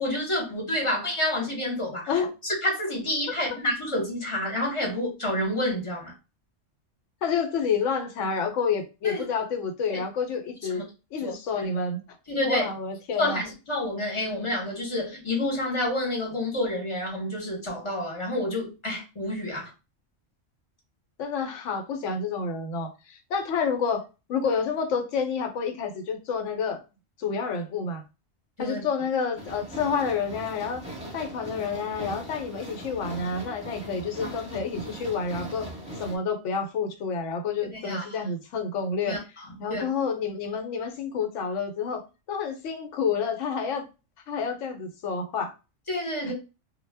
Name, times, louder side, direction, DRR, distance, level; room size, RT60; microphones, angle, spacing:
voice 1, 0.0-6.1 9.0-9.2 9.9-10.0 10.7-10.8 11.2-11.3 11.6-11.7 12.3-12.6 13.2-19.7 28.6-28.8 34.2-34.3 37.7-38.1 39.0-39.2 39.7-39.8 45.9-46.3, left 1 dB, 30° left, 0.8 m, -29 dB
voice 2, 7.2-10.8 11.1-12.0 12.4-13.4 21.2-24.0 24.3-26.8 27.2-28.0 28.6-30.8 31.1-35.7 36.0-39.2 39.6-42.0 42.3-43.8 44.3-45.5 46.2-46.3, left 5 dB, 75° left, 0.9 m, -29 dB
sound 1, 29.3-36.2, right 1 dB, 5° right, 0.7 m, -40 dB
2.1 x 2.0 x 3.2 m
omnidirectional pair, 1.3 m